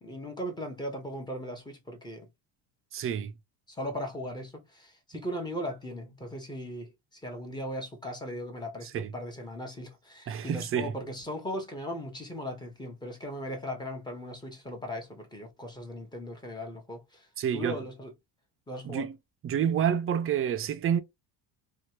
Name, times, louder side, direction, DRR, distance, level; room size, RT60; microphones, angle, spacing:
voice 1, 0.0-2.3 3.7-18.1 18.7-19.1, equal, 10° left, 0.9 m, -38 dB
voice 2, 2.9-3.3 5.1-5.2 8.9-9.1 10.3-10.9 17.4-17.8 18.8-19.1 19.4-21.0, right 8 dB, 35° right, 0.4 m, -28 dB
2.9 x 2.4 x 2.9 m
cardioid pair, 130°, 44 cm